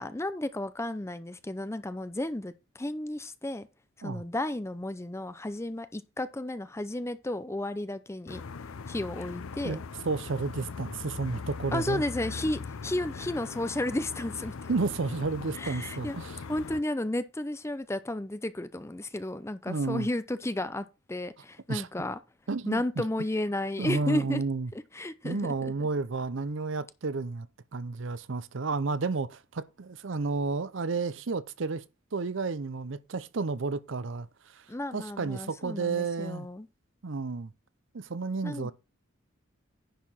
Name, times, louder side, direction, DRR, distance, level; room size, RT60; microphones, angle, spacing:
voice 1, 0.0-3.7 4.0-8.4 8.9-9.8 11.7-14.7 15.6-16.2 16.5-22.2 22.7-24.4 24.9-25.7 34.7-36.7 38.4-38.7, left 1 dB, 15° left, 0.5 m, -33 dB
sound 1, 8.3-16.8, left 5 dB, 80° left, 0.6 m, -40 dB
voice 2, 9.6-12.0 14.7-16.4 19.7-20.1 21.7-21.9 22.5-23.0 23.8-24.7 25.2-27.5 27.7-31.8 32.1-34.7 34.9-36.5 37.0-37.5 37.9-38.7, right 4 dB, 60° right, 0.6 m, -31 dB
10.5 x 4.8 x 5.5 m
head